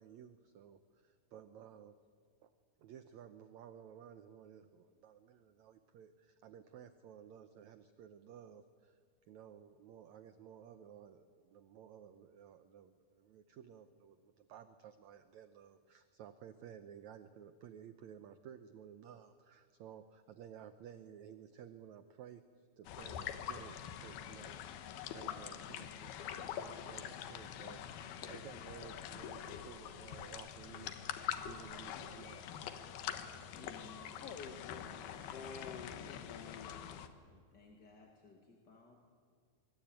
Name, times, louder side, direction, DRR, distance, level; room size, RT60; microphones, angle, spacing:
voice 1, 0.0-2.0 2.4-2.5 2.8-9.0 9.3-30.9 31.3-32.7, right 9 dB, 75° right, 10 dB, 1.7 m, -55 dB
sound 1, 22.9-37.1, left 9 dB, 90° left, 3.2 m, -45 dB
voice 2, 33.5-34.3 34.7-35.5 37.3-38.9, left 3 dB, 35° left, 1 dB, 2.3 m, -59 dB
voice 3, 34.2-34.8 35.3-36.7, left 5 dB, 60° left, 7 dB, 1.7 m, -48 dB
24.5 x 23.0 x 9.0 m, 2.1 s
omnidirectional pair, 4.3 m